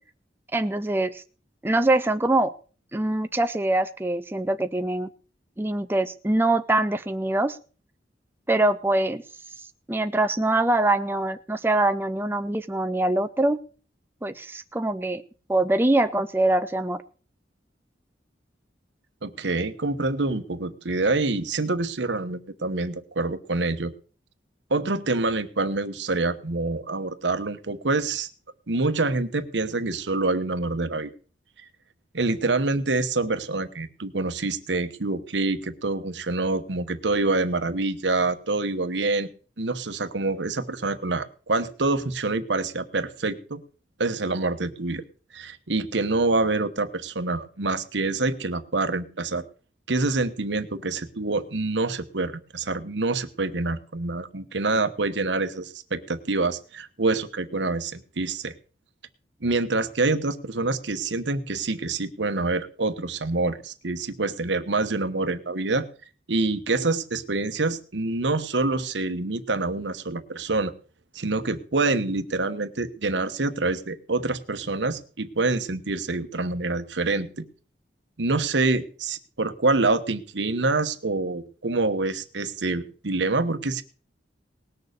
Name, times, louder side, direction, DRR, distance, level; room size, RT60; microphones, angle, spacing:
voice 1, 0.5-1.2 1.6-2.5 2.9-5.1 5.6-7.6 8.5-9.2 9.9-13.6 14.2-15.2 15.5-17.0, right 2 dB, 10° right, 8 dB, 0.5 m, -23 dB
voice 2, 19.2-23.9 24.7-28.3 28.7-31.1 32.1-39.3 39.6-43.6 44.0-45.0 45.3-49.4 49.9-58.5 59.4-65.9 66.3-70.7 71.1-77.4 78.2-83.8, right 3 dB, 80° right, 10 dB, 1.1 m, -26 dB
19.0 x 6.8 x 6.6 m, 0.40 s
head